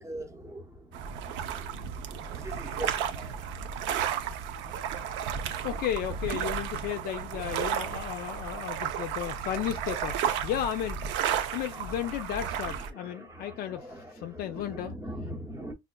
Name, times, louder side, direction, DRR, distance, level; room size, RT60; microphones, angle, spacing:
voice 1, 0.0-3.4 4.9-5.3 8.5-8.7 9.2-9.4 10.3-10.5 11.3-15.7, right 1 dB, 15° right, 0.8 m, -43 dB
sound 1, 0.9-12.9, right 8 dB, 60° right, 0.5 m, -33 dB
voice 2, 5.6-11.1 11.5-13.9 14.1-14.9, left 11 dB, 50° left, 0.4 m, -34 dB
5.3 x 2.4 x 2.2 m
cardioid pair, 155°, 21 cm